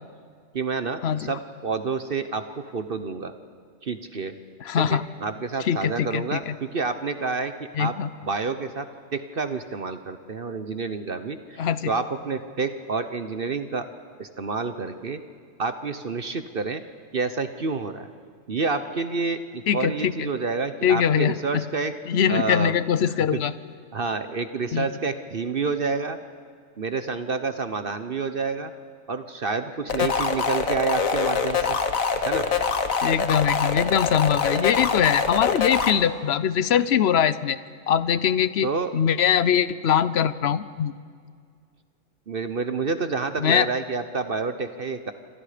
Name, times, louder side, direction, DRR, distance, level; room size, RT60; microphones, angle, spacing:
voice 1, 0.5-3.3 3.8-4.3 4.8-8.0 8.2-13.9 14.2-15.2 15.6-16.8 17.1-18.1 18.5-21.9 22.3-22.8 23.3-23.4 23.9-26.2 26.8-28.7 29.1-31.8 32.2-32.5 38.6-38.9 42.3-45.1, right 4 dB, 45° right, 10 dB, 1.0 m, -29 dB
voice 2, 4.6-5.0 5.6-6.5 7.8-8.1 11.6-11.9 19.7-20.3 20.8-21.3 22.1-23.5 24.7-24.9 33.0-37.6 37.9-40.9 43.4-43.7, left 8 dB, 55° left, 15 dB, 0.9 m, -22 dB
sound 1, 29.9-35.9, left 5 dB, 75° left, 1.7 m, -24 dB
27.5 x 25.5 x 5.1 m, 2.1 s
omnidirectional pair, 1.4 m